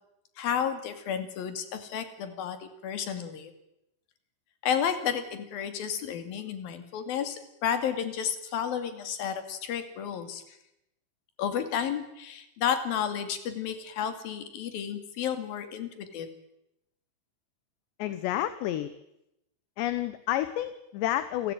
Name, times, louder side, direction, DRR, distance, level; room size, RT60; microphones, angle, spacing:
voice 1, 0.4-3.5 4.6-10.6 11.4-16.3, left 8 dB, 55° left, 9 dB, 3.8 m, -32 dB
voice 2, 18.0-18.9 19.8-21.5, left 13 dB, 75° left, 13 dB, 3.0 m, -30 dB
29.0 x 19.0 x 9.1 m, 0.86 s
omnidirectional pair, 5.7 m